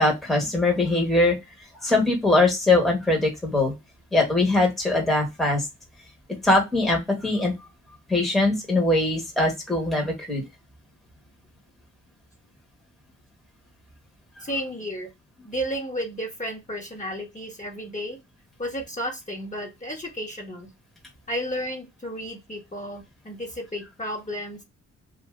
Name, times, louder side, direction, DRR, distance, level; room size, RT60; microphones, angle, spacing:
voice 1, 0.0-1.3 1.7-3.7 4.1-5.7 6.4-7.5 8.1-10.4, left 2 dB, ahead, 0 dB, 1.2 m, -21 dB
voice 2, 14.4-15.1 15.4-18.2 18.6-20.7 21.3-24.6, equal, 25° left, -1 dB, 1.2 m, -32 dB
2.6 x 2.4 x 3.2 m, 0.20 s
cardioid pair, 75°, 31 cm